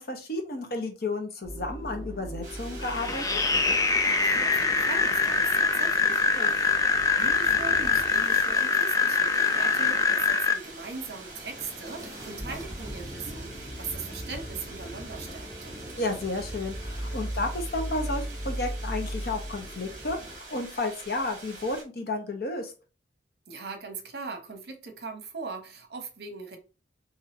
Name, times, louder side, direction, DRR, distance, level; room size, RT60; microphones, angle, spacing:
voice 1, 0.0-3.4 6.4-6.5 16.0-22.7, left 2 dB, 60° left, 1.0 m, -32 dB
sound 1, 1.4-20.4, equal, 20° right, 1.0 m, -39 dB
sound 2, 2.4-21.8, right 3 dB, 50° right, 1.6 m, -45 dB
sound 3, 2.8-10.5, left 4 dB, 20° left, 0.5 m, -24 dB
voice 2, 4.2-6.2 6.5-6.8 7.1-15.7 23.5-26.6, right 4 dB, 65° right, 1.0 m, -40 dB
3.9 x 2.9 x 2.7 m
head